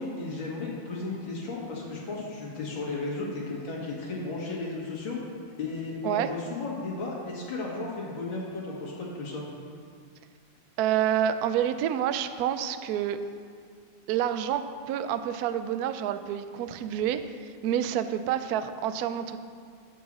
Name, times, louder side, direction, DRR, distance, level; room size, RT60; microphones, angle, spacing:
voice 1, 0.0-5.2 5.6-9.4, left 3 dB, 75° left, -4 dB, 2.6 m, -34 dB
voice 2, 10.8-13.2 14.1-19.4, right 10 dB, 80° right, 11 dB, 0.8 m, -28 dB
10.5 x 4.7 x 7.4 m, 2.2 s
omnidirectional pair, 2.2 m